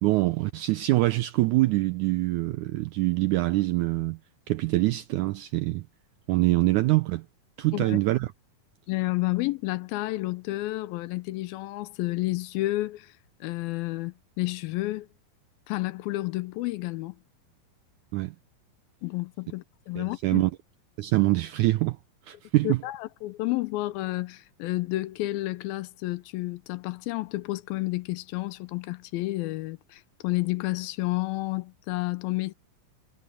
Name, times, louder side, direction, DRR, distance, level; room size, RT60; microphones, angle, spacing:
voice 1, 0.0-4.2 4.5-5.8 6.3-7.2 7.6-8.3 18.1-18.3 19.9-20.5 21.0-22.0 22.3-22.8, right 18 dB, 80° right, 1.7 m, -24 dB
voice 2, 8.9-13.1 13.4-15.1 15.7-17.2 19.0-20.4 22.6-32.5, left 19 dB, 85° left, 2.6 m, -30 dB
omnidirectional pair, 4.1 m